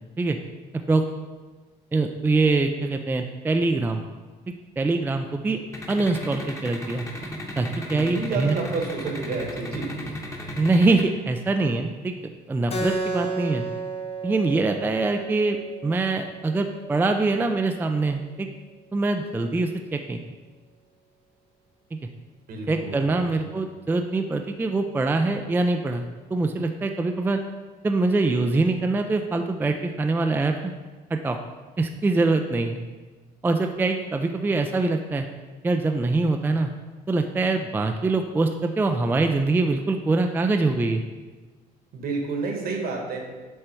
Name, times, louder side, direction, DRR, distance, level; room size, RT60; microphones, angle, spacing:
voice 1, 1.9-4.1 4.8-5.6 5.9-7.0 7.6-8.6 10.6-12.1 12.5-13.6 14.2-15.6 15.8-18.5 18.9-20.2 21.9-22.0 22.7-27.4 27.8-30.7 31.1-31.4 31.8-32.8 33.4-35.3 35.6-36.7 37.1-41.0, right 3 dB, 10° right, 5 dB, 0.3 m, -24 dB
sound 1, 5.7-11.0, left 1 dB, 15° left, 1.0 m, -35 dB
voice 2, 7.9-9.9 22.5-23.6 41.9-43.3, right 4 dB, 60° right, 2 dB, 1.4 m, -30 dB
Keyboard (musical), 12.7-17.8, right 3 dB, 35° left, 0.7 m, -33 dB
7.5 x 3.3 x 4.4 m, 1.3 s
cardioid pair, 110°, 17 cm